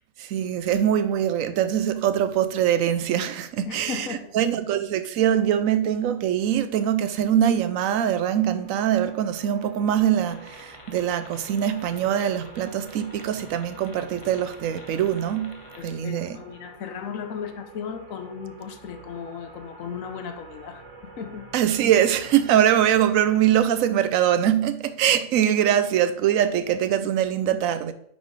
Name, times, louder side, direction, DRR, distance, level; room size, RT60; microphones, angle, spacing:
voice 1, 0.2-16.4 21.5-27.9, right 10 dB, 75° right, 1.0 m, -23 dB
voice 2, 3.6-4.3 15.8-21.5, left 7 dB, 75° left, 1.1 m, -36 dB
sound 1, 7.6-24.3, right 3 dB, 55° right, 3.1 m, -48 dB
sound 2, 10.3-15.8, left 2 dB, 25° left, 0.9 m, -49 dB
9.3 x 4.0 x 3.6 m
omnidirectional pair, 1.4 m